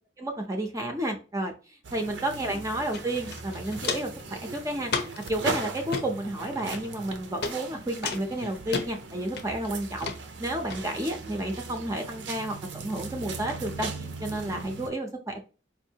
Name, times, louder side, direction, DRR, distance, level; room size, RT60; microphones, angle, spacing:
voice 1, 0.2-4.9 5.3-10.1 10.4-15.4, right 1 dB, 20° right, 3 dB, 0.6 m, -31 dB
sound 1, 1.8-14.9, right 4 dB, 80° right, 0.7 m, -39 dB
Walk footsteps, 2.9-3.0 3.3-4.2 4.9-5.3 5.8-6.1 6.7-7.1 7.4-7.6 8.0-8.9 9.4-9.7 10.0-10.2 10.7-10.8, left 4 dB, 60° left, 0.7 m, -32 dB
4.5 x 2.6 x 2.8 m, 0.34 s
head